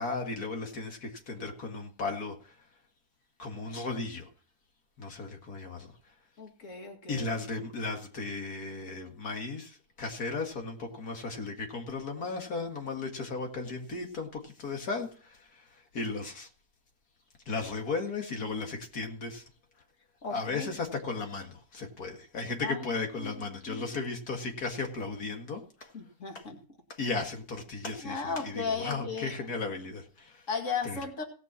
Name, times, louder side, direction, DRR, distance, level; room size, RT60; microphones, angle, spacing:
voice 1, 0.0-2.6 3.4-4.3 5.0-5.9 7.1-16.5 17.5-19.4 20.3-25.9 26.3-26.4 26.9-30.5 30.8-31.0, left 3 dB, 90° left, 3 dB, 2.4 m, -35 dB
voice 2, 6.4-7.3 7.6-7.7 20.2-20.7 22.6-22.9 23.2-23.4 23.7-23.9 25.9-26.6 28.0-29.3 30.5-31.2, left 5 dB, 55° left, 3 dB, 2.4 m, -36 dB
18.0 x 6.0 x 6.0 m, 0.40 s
omnidirectional pair, 1.6 m